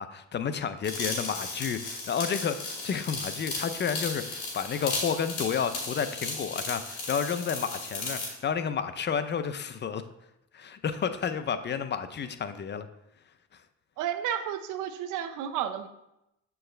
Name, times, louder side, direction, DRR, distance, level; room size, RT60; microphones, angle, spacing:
voice 1, 0.0-10.0 10.5-12.9, left 7 dB, 35° left, 11 dB, 0.5 m, -31 dB
sound 1, 0.8-8.3, left 3 dB, 85° left, 2.2 m, -35 dB
voice 2, 14.0-15.9, right 9 dB, 85° right, 9 dB, 0.5 m, -32 dB
7.4 x 4.7 x 3.2 m, 0.86 s
cardioid pair, 90°, 30 cm